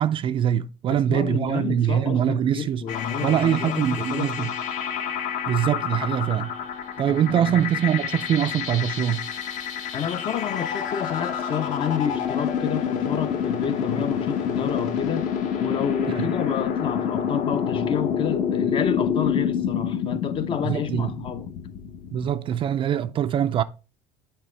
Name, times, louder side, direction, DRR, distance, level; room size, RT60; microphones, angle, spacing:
voice 1, 0.0-2.8 3.2-4.5 5.5-6.5 7.0-9.2 16.2-16.3 20.7-21.1 22.1-23.6, right 10 dB, 35° right, 0.3 m, -23 dB
voice 2, 0.9-4.5 7.1-7.7 9.9-15.3 15.6-21.5, left 8 dB, 35° left, 0.6 m, -30 dB
sound 1, 2.9-22.3, left 7 dB, 55° left, 1.1 m, -28 dB
8.7 x 4.3 x 3.2 m
cardioid pair, 140°, 15 cm